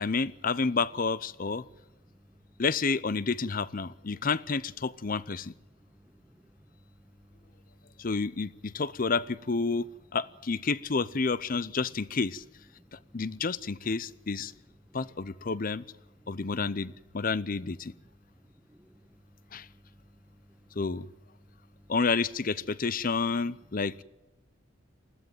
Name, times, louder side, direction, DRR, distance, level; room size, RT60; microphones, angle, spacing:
voice 1, 0.0-1.6 2.6-5.5 8.0-12.4 12.9-14.5 14.9-15.8 16.3-17.9 19.5-19.7 20.8-21.1 21.9-23.9, left 4 dB, 45° left, 18 dB, 0.7 m, -30 dB
voice 2, 1.7-2.6 5.0-5.1 5.7-8.1 8.7-9.2 12.8-13.5 14.4-14.5 14.8-15.6 16.0-17.3 17.6-21.9 23.9-24.0, equal, 5° right, 8 dB, 1.3 m, -60 dB
21.0 x 15.0 x 9.3 m, 0.95 s
head